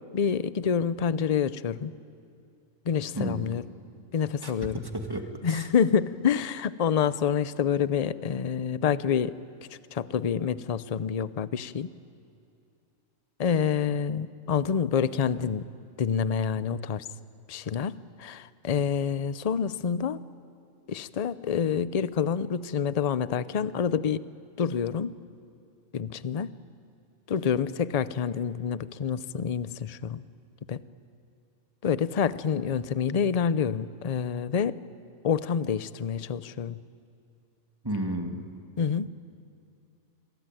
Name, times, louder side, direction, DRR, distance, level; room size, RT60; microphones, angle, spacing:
voice 1, 0.1-1.9 2.9-3.7 4.1-4.8 5.4-9.3 9.9-11.9 13.4-15.7 16.0-17.1 17.5-17.9 18.2-20.2 20.9-24.2 24.6-25.1 25.9-26.5 27.3-30.2 30.7-30.8 31.8-34.8 35.2-36.7 38.8-39.1, left 7 dB, 40° left, 16 dB, 0.6 m, -27 dB
voice 2, 4.9-5.7 37.8-38.4, right 1 dB, 15° right, 4 dB, 2.0 m, -32 dB
26.5 x 22.5 x 9.1 m, 2.6 s
omnidirectional pair, 1.4 m